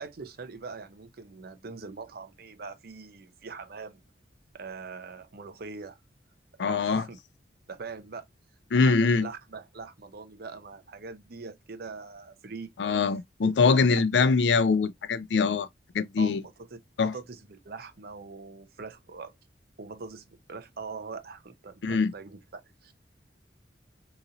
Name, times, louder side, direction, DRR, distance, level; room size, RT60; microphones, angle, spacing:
voice 1, 0.0-4.0 4.5-6.0 6.6-7.2 7.7-8.2 8.8-12.7 13.4-14.0 16.2-16.7 17.0-19.3 19.8-22.9, right 4 dB, 60° right, 0.6 m, -42 dB
voice 2, 6.6-7.0 8.7-9.3 12.8-15.7 15.9-16.4 17.0-17.1 21.8-22.1, left 4 dB, 75° left, 0.4 m, -23 dB
3.8 x 3.0 x 2.6 m
head